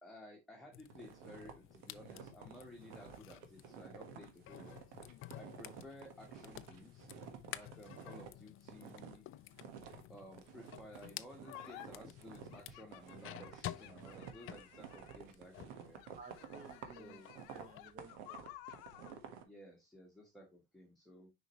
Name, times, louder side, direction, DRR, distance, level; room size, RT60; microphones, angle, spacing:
voice 1, 0.0-4.8 5.3-7.1 7.5-9.2 10.1-16.0 16.9-17.3 19.4-21.3, left 1 dB, ahead, 1.3 m, -55 dB
sound 1, 0.7-15.9 16.2-17.9, left 13 dB, 40° left, 0.4 m, -52 dB
sound 2, 0.9-8.3 8.6-9.2 9.6-19.4, right 7 dB, 80° right, 1.4 m, -52 dB
sound 3, 11.4-11.9 12.5-15.3 15.9-19.2, left 14 dB, 80° left, 0.9 m, -55 dB
voice 2, 16.1-17.2 17.5-18.5, right 4 dB, 25° right, 1.0 m, -55 dB
6.2 x 5.2 x 3.0 m
cardioid pair, 120°, 34 cm